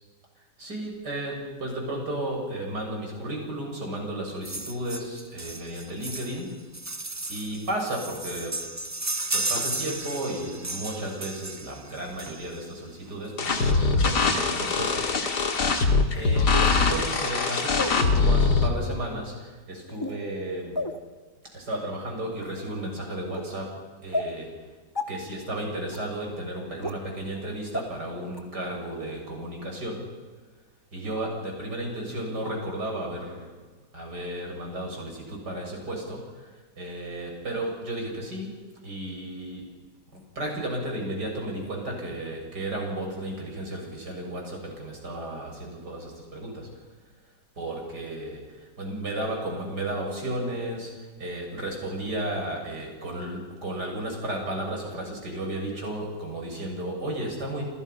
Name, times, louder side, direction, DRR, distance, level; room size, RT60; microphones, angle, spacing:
voice 1, 0.6-6.6 7.3-8.6 9.3-15.4 16.1-20.8 21.5-24.6 25.1-30.2 30.9-33.5 33.9-39.7 40.1-46.7 47.6-57.6, right 1 dB, 70° right, 1 dB, 7.7 m, -34 dB
sound 1, 4.4-12.8 13.9-14.0 14.3-14.4 14.6-14.8 15.1-15.7 16.2-16.3, right 2 dB, 25° right, 0.3 m, -34 dB
sound 2, 13.4-18.7, left 4 dB, 75° left, 2.7 m, -22 dB
sound 3, 14.0-14.1 15.0-15.1 16.5-16.8 17.7-17.9 18.7-18.9 19.9-20.2 20.7-21.0 21.7-21.8 22.4-22.6 23.3-23.4 24.1-24.3 24.9-25.0 25.9-26.0 26.8-26.9 27.7-27.8 28.3-28.4, left 2 dB, 15° left, 1.9 m, -31 dB
29.0 x 28.0 x 5.8 m, 1.3 s
omnidirectional pair, 1.8 m